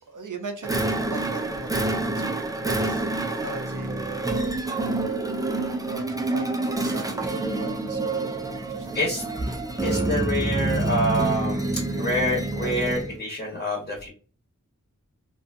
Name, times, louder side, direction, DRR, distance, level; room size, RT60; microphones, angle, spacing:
voice 1, 0.1-3.1 3.4-5.1 5.8-9.2, right 3 dB, 80° right, 0.6 m, -39 dB
sound 1, 0.6-13.2, right 2 dB, 10° right, 0.4 m, -27 dB
voice 2, 9.8-11.7 11.9-14.1, equal, 30° left, 1.2 m, -26 dB
2.5 x 2.3 x 2.5 m
wide cardioid pair, 65°, 31 cm